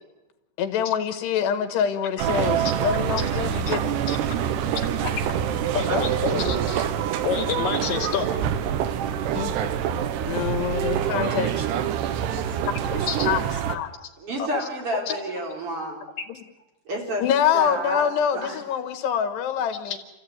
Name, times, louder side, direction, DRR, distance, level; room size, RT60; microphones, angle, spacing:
voice 1, 0.6-3.9 9.3-9.5 10.3-11.7 12.3-12.4 12.9-13.9 16.3-16.4 17.2-20.0, left 8 dB, 80° left, 8 dB, 3.6 m, -25 dB
sound 1, 2.2-13.8, right 9 dB, 90° right, 3.2 m, -26 dB
voice 2, 4.1-4.4 5.0-5.1 5.7-6.9 7.2-8.3 12.6-12.7 13.1-13.3 14.4-14.6 15.1-15.2 19.9-20.0, left 7 dB, 55° left, 1 dB, 4.2 m, -28 dB
voice 3, 6.3-6.8 14.2-16.0 16.9-17.2 17.5-18.6, right 1 dB, 35° right, 0 dB, 4.7 m, -30 dB
29.5 x 14.5 x 9.5 m, 1.0 s
omnidirectional pair, 4.8 m